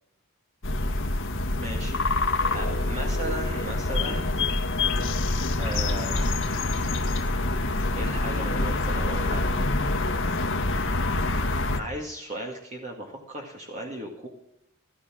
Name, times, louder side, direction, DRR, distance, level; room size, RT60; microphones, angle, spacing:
sound 1, 0.6-11.8, left 2 dB, 60° left, 1.6 m, -26 dB
voice 1, 1.5-4.3 5.5-7.0 7.9-9.5 11.7-14.3, right 1 dB, 35° right, 0 dB, 2.0 m, -37 dB
14.5 x 14.5 x 6.2 m, 0.75 s
head